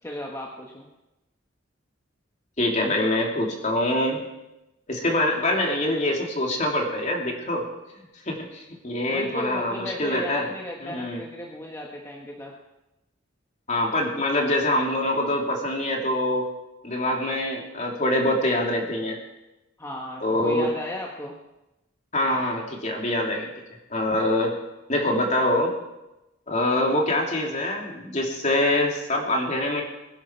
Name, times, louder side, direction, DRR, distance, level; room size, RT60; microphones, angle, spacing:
voice 1, 0.0-0.9 9.1-12.5 19.8-21.3, left 1 dB, 15° left, -1 dB, 1.4 m, -35 dB
voice 2, 2.6-4.2 4.9-7.7 8.3-10.5 10.8-11.2 13.7-16.4 16.8-19.2 20.2-20.7 22.1-23.5 23.9-24.6 24.9-25.7 26.5-29.8, left 1 dB, 40° left, 0 dB, 2.9 m, -24 dB
21.5 x 11.0 x 4.6 m, 0.97 s
head